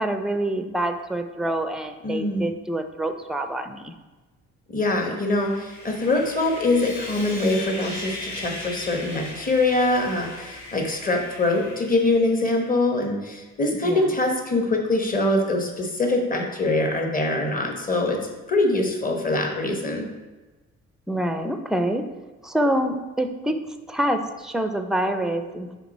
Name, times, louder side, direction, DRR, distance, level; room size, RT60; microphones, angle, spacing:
voice 1, 0.0-3.9 13.8-14.2 21.1-22.0 22.4-23.6 23.9-25.7, right 1 dB, ahead, 7 dB, 0.4 m, -26 dB
voice 2, 2.0-2.5 4.7-18.2 18.5-20.1, left 2 dB, 30° left, 3 dB, 1.1 m, -23 dB
Sawing, 5.2-12.7, left 2 dB, 85° left, 1.6 m, -38 dB
5.9 x 4.0 x 4.2 m, 1.2 s
cardioid pair, 90°, 30 cm